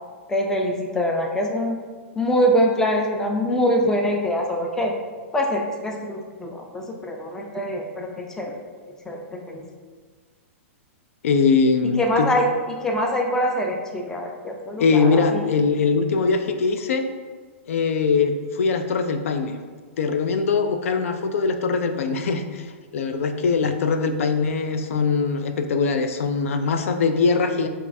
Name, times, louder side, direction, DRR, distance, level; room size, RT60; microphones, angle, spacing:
voice 1, 0.3-1.8 2.2-4.9 5.3-8.6 9.1-9.6 12.0-12.5 12.8-15.5, equal, 5° left, 1 dB, 0.4 m, -24 dB
voice 2, 11.2-12.3 14.8-17.0 17.7-19.6 20.0-27.7, left 4 dB, 80° left, 7 dB, 0.4 m, -22 dB
5.2 x 2.4 x 2.6 m, 1.5 s
hypercardioid pair, 140°, 7 cm